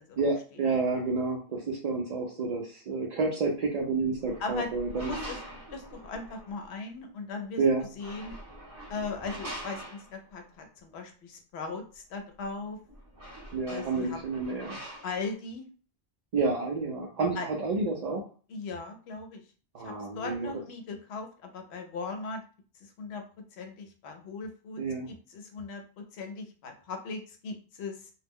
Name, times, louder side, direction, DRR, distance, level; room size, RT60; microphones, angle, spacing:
voice 1, 0.2-5.1 7.6-7.8 13.5-14.8 16.3-18.2 19.7-20.5 24.8-25.1, right 3 dB, 55° right, -2 dB, 0.5 m, -29 dB
sound 1, 4.0-6.7 7.8-10.5 12.4-12.5 12.8-15.3, right 1 dB, 20° right, 0.7 m, -44 dB
voice 2, 4.4-4.7 5.0-5.4 5.7-7.6 8.0-8.3 8.9-12.8 13.7-14.2 15.0-15.7 17.4-17.5 18.5-19.4 19.8-22.4 22.8-23.2 23.5-24.8 25.1-28.1, left 4 dB, 80° left, 5 dB, 0.9 m, -38 dB
2.3 x 2.0 x 3.5 m, 0.38 s
omnidirectional pair, 1.1 m